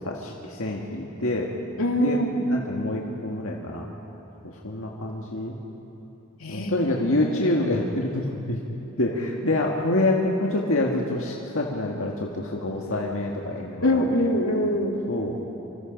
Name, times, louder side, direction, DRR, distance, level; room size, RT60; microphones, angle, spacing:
voice 1, 0.0-1.5 2.0-2.2 2.5-3.9 4.6-5.6 6.5-8.6 9.0-14.0 15.1-15.4, left 1 dB, 70° left, -1 dB, 1.9 m, -26 dB
voice 2, 1.8-2.4 6.4-6.7 13.8-15.0, left 1 dB, 90° left, 2 dB, 2.5 m, -23 dB
27.0 x 25.5 x 5.3 m, 3.0 s
head